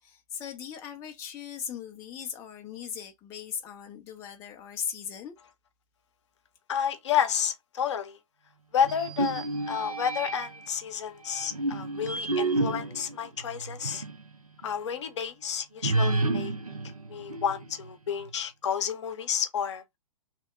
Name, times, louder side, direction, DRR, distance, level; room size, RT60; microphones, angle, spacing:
voice 1, 0.0-5.4, left 8 dB, 15° left, 0.4 m, -38 dB
voice 2, 6.7-8.2 8.7-14.0 14.6-16.5 17.1-19.8, left 8 dB, 55° left, 0.6 m, -30 dB
sound 1, 8.8-10.7 11.3-14.2 14.6-14.7 15.8-17.9, right 2 dB, 85° right, 0.6 m, -30 dB
2.8 x 2.1 x 3.3 m
figure-of-eight pair, 110°, 18 cm